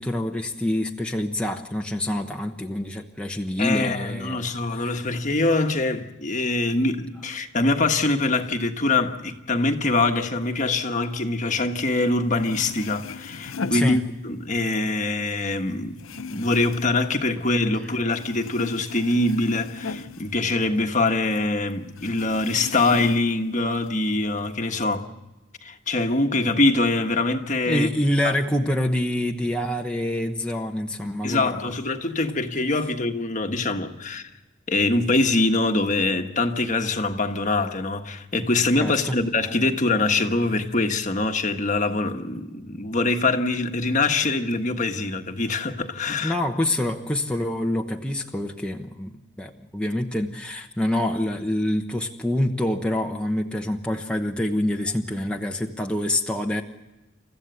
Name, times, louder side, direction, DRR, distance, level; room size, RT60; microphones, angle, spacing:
voice 1, 0.0-4.9 13.6-14.0 27.7-31.7 38.8-39.2 46.2-56.6, left 1 dB, 5° left, 1.0 m, -26 dB
voice 2, 3.6-16.0 16.3-25.1 25.6-27.9 28.2-28.3 31.2-34.3 34.7-46.3, left 2 dB, 40° left, 1.4 m, -24 dB
sound 1, 12.1-12.2 12.3-14.6 14.9-17.8 18.1-21.1 21.4-21.5 22.0-23.5 23.8-24.6, left 4 dB, 80° left, 0.7 m, -38 dB
29.0 x 14.5 x 8.1 m
head